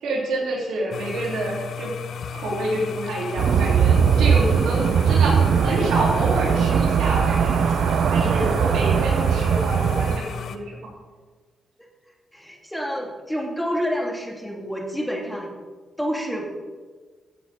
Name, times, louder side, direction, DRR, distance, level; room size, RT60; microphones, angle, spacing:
voice 1, 0.0-1.9 2.3-10.8, right 1 dB, 90° right, -4 dB, 3.2 m, -28 dB
sound 1, 0.9-10.6, left 7 dB, 70° left, 0.6 m, -34 dB
sound 2, 3.4-10.2, right 7 dB, 65° right, 0.4 m, -20 dB
voice 2, 12.3-15.5 16.0-16.4, equal, 5° left, 0 dB, 2.0 m, -28 dB
16.0 x 8.0 x 3.7 m, 1.4 s
cardioid pair, 105°, 0 cm